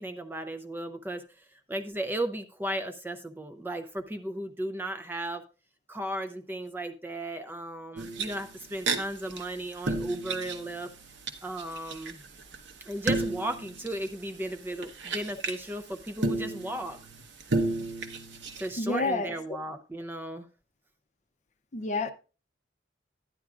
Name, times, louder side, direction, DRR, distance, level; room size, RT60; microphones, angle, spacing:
voice 1, 0.0-5.4 5.9-10.9 11.4-12.2 12.8-17.0 18.6-20.5, right 1 dB, 10° right, 0.5 m, -35 dB
sound 1, 8.0-9.0 9.3-9.4 9.7-11.3 11.6-15.6 16.2-18.7, right 2 dB, 70° right, 1.0 m, -32 dB
voice 2, 18.8-19.3 21.7-22.1, left 3 dB, 40° left, 0.6 m, -29 dB
11.5 x 10.0 x 2.4 m
head